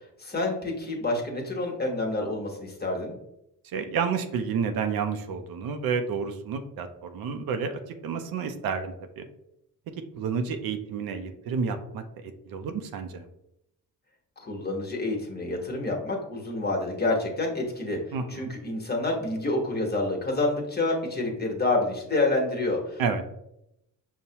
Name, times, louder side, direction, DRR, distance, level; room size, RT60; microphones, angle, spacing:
voice 1, 0.2-3.1 14.4-18.0 18.3-23.2, left 2 dB, 25° left, 0 dB, 1.1 m, -28 dB
voice 2, 3.7-9.3 10.1-13.2 18.1-18.5 23.0-23.2, right 6 dB, 80° right, 7 dB, 0.6 m, -30 dB
5.5 x 2.2 x 2.8 m, 0.81 s
cardioid pair, 80°, 35 cm